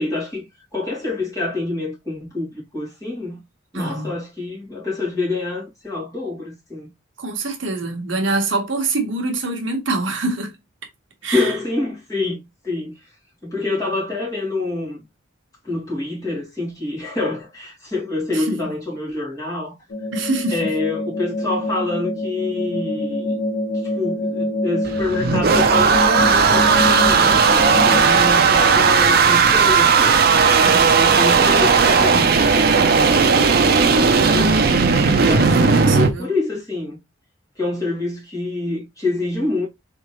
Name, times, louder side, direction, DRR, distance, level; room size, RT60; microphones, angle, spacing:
voice 1, 0.0-3.4 3.7-6.9 11.2-13.1 13.4-15.0 15.6-19.7 20.5-23.4 23.8-33.2 33.8-37.0 37.6-39.7, left 2 dB, 15° left, 2.6 m, -27 dB
voice 2, 3.7-4.1 7.2-10.5 11.2-11.6 18.3-18.8 20.1-20.7 30.6-31.0 35.0-36.3, right 2 dB, 70° right, 1.0 m, -25 dB
sound 1, 19.9-28.0, left 1 dB, 75° left, 0.9 m, -25 dB
sound 2, 24.9-36.1, right 5 dB, 50° right, 0.5 m, -15 dB
4.0 x 3.5 x 3.0 m
head